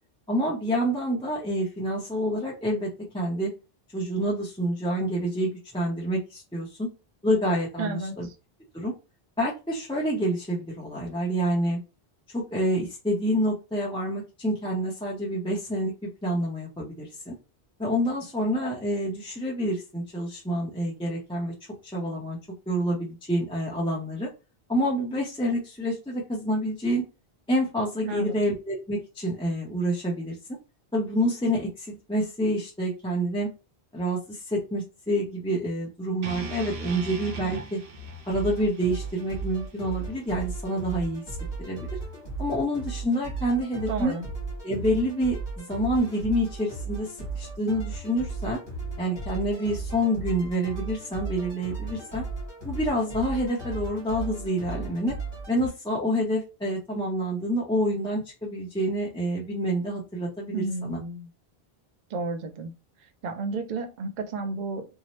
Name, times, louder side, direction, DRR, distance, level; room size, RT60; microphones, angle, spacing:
voice 1, 0.3-3.5 3.9-6.9 7.2-8.3 8.7-8.9 9.4-11.8 12.3-17.3 17.8-21.5 21.9-22.4 22.7-24.3 24.7-27.0 27.5-30.3 30.9-33.5 33.9-37.8 38.3-41.2 41.6-41.9 42.4-44.2 44.6-48.6 49.0-52.2 52.6-55.1 55.5-61.0, equal, 5° left, -5 dB, 0.5 m, -28 dB
voice 2, 7.8-8.3 28.0-28.4 43.9-44.3 60.5-61.3 62.1-62.7 63.2-64.9, right 3 dB, 55° right, 6 dB, 0.6 m, -32 dB
sound 1, 36.2-40.4, right 3 dB, 85° right, 1.0 m, -39 dB
sound 2, 37.9-55.7, right 3 dB, 25° left, 1.3 m, -36 dB
2.7 x 2.0 x 3.0 m, 0.29 s
omnidirectional pair, 1.0 m